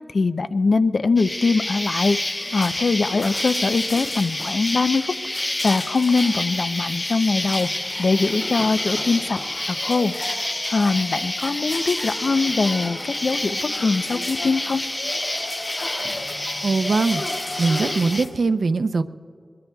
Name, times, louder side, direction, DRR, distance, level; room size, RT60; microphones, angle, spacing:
voice 1, 0.1-2.2 2.5-7.7 8.0-9.4 9.7-10.1 10.4-14.8, left 4 dB, 75° left, 11 dB, 0.5 m, -22 dB
Insect, 1.2-18.2, left 1 dB, 25° left, 0.5 m, -28 dB
sound 1, 2.0-18.3, left 2 dB, 55° left, 5.0 m, -37 dB
voice 2, 16.6-19.0, right 4 dB, 90° right, 11 dB, 0.5 m, -22 dB
24.5 x 21.5 x 2.3 m, 2.3 s
wide cardioid pair, 95°, 0 cm